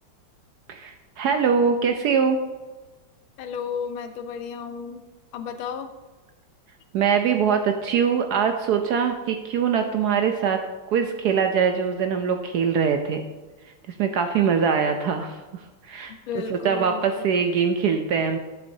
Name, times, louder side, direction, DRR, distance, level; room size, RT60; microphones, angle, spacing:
voice 1, 0.7-2.4 6.9-10.6 10.9-13.2 14.0-16.1 16.5-18.4, right 6 dB, 75° right, 6 dB, 0.9 m, -23 dB
voice 2, 3.4-5.0 5.3-5.9 16.3-17.2, left 6 dB, 90° left, 8 dB, 1.5 m, -33 dB
10.5 x 6.9 x 2.7 m, 1.2 s
omnidirectional pair, 2.1 m